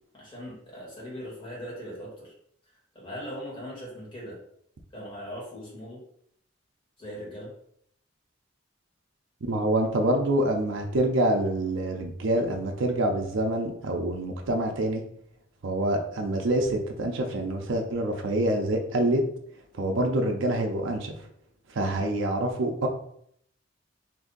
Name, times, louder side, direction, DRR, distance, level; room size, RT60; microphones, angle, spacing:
voice 1, 0.1-2.3 2.9-4.4 4.9-6.0 7.0-7.5, equal, 25° left, -5 dB, 1.5 m, -39 dB
voice 2, 9.5-15.0 15.6-19.2 19.8-21.1 21.7-22.9, right 1 dB, 70° right, 2 dB, 0.5 m, -26 dB
2.7 x 2.5 x 3.7 m, 0.67 s
head